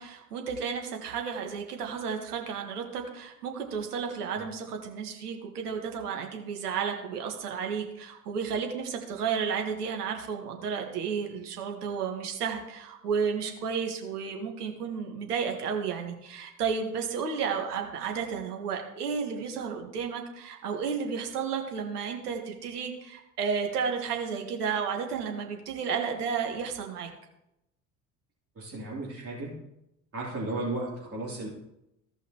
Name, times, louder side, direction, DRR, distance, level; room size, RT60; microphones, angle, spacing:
voice 1, 0.0-27.1, right 6 dB, 75° right, 3 dB, 1.7 m, -32 dB
voice 2, 28.5-29.5 30.1-31.5, right 2 dB, 30° right, -8 dB, 3.2 m, -34 dB
16.0 x 5.6 x 3.0 m, 0.86 s
figure-of-eight pair, 60°, 46 cm